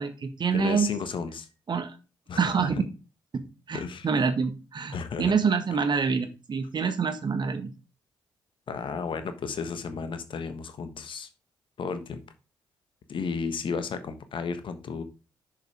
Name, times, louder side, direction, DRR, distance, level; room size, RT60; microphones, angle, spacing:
voice 1, 0.0-0.9 1.7-2.0 2.4-2.8 3.3-3.4 3.7-7.7, right 5 dB, 50° right, 9 dB, 1.6 m, -26 dB
voice 2, 0.5-1.5 2.3-2.7 3.7-4.1 4.9-5.3 8.7-11.3 11.8-12.2 13.1-15.0, left 5 dB, 55° left, 10 dB, 1.3 m, -33 dB
6.7 x 6.7 x 4.9 m, 0.32 s
hypercardioid pair, 45°, 10 cm